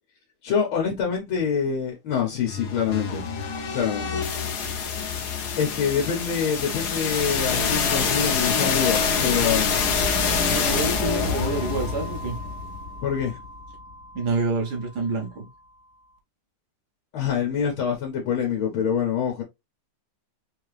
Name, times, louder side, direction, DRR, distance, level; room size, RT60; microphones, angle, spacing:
voice 1, 0.4-3.3 3.7-4.2 5.6-9.7 13.0-13.4 17.1-19.4, left 7 dB, 75° left, 1.9 m, -25 dB
sound 1, 2.5-14.3, left 5 dB, 60° left, 1.2 m, -26 dB
voice 2, 10.5-12.4 14.1-15.5, right 3 dB, 55° right, 1.4 m, -27 dB
4.3 x 2.8 x 3.1 m
omnidirectional pair, 2.3 m